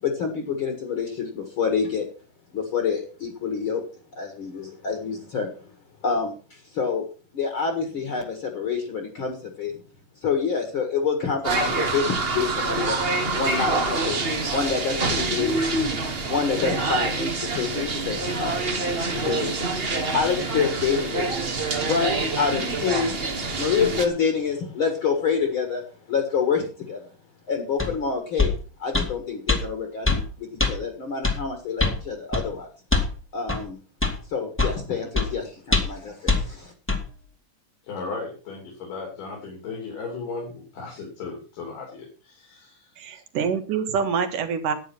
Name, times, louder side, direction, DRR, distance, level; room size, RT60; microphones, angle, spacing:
voice 1, 0.0-2.1 2.5-3.8 4.1-5.6 6.0-7.1 7.3-9.8 10.2-13.0 13.4-14.2 14.5-15.9 16.3-19.7 20.1-21.3 21.8-27.1 27.5-28.5 28.8-32.7 33.3-33.8 34.3-36.7, left 6 dB, 45° left, 4 dB, 2.2 m, -27 dB
sound 1, 11.4-24.1, right 3 dB, 55° right, 0.6 m, -26 dB
sound 2, 27.8-27.9 28.4-28.6 28.9-29.1 29.5-29.6 30.1-30.2 30.6-30.7 31.2-31.4 31.8-32.0 32.3-32.5 32.9-33.1 33.5-33.6 34.0-34.2 34.6-34.8 35.2-35.3 35.7-36.0 36.3-36.4 36.9-37.0, left 3 dB, 5° left, 1.3 m, -22 dB
voice 2, 37.8-43.2, left 4 dB, 75° left, 0 dB, 4.8 m, -36 dB
voice 3, 43.0-44.7, right 6 dB, 80° right, 7 dB, 3.2 m, -26 dB
11.0 x 9.6 x 5.9 m, 0.37 s
omnidirectional pair, 3.7 m